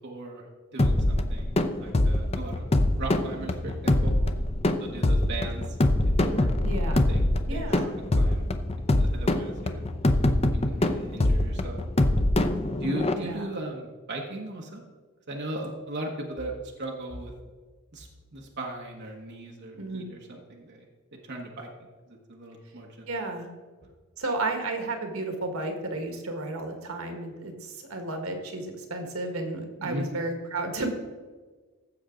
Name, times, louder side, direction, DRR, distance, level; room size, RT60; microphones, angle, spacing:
voice 1, 0.0-2.6 2.9-4.1 4.8-5.8 6.0-6.5 7.1-7.2 7.5-8.4 8.8-9.8 10.6-11.8 12.8-14.8 15.3-16.5 16.8-17.3 17.9-20.8 21.2-21.7 22.1-23.1 29.8-30.0, right 1 dB, 55° right, 0 dB, 1.3 m, -38 dB
sound 1, 0.8-13.1, left 1 dB, 30° left, 0.6 m, -24 dB
voice 2, 6.6-7.0 7.5-7.8 13.1-13.5 19.7-20.1 23.1-23.5 24.2-30.9, right 2 dB, 80° right, 4 dB, 1.7 m, -32 dB
15.5 x 7.1 x 3.8 m, 1.4 s
head